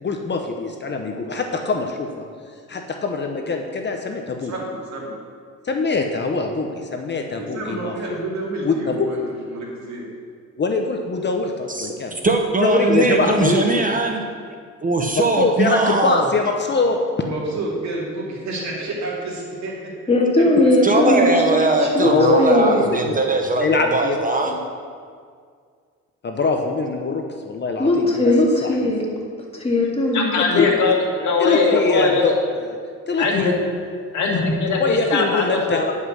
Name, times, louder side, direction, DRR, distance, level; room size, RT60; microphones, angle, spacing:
voice 1, 0.0-2.1 2.7-4.5 5.6-7.9 8.6-9.1 10.6-12.2 12.6-13.7 15.1-17.0 22.0-22.5 23.0-23.2 23.5-24.6 26.2-28.3 28.6-28.9 30.3-30.7 31.4-32.8 33.1-33.5 34.8-35.9, left 4 dB, 35° left, 3 dB, 0.9 m, -23 dB
voice 2, 4.4-5.1 7.4-10.1 17.2-19.9, right 2 dB, 65° right, -3 dB, 2.5 m, -29 dB
voice 3, 11.7-14.2 14.8-16.3 20.8-24.5, right 2 dB, 25° right, 3 dB, 0.9 m, -20 dB
voice 4, 20.1-22.1 22.4-22.9 27.8-29.1 29.6-30.4, left 1 dB, 20° left, -2 dB, 2.2 m, -18 dB
voice 5, 30.1-32.3 33.2-33.5 34.1-35.8, left 4 dB, 75° left, 0 dB, 1.8 m, -20 dB
9.5 x 5.6 x 6.3 m, 2.1 s
cardioid pair, 90°, 30 cm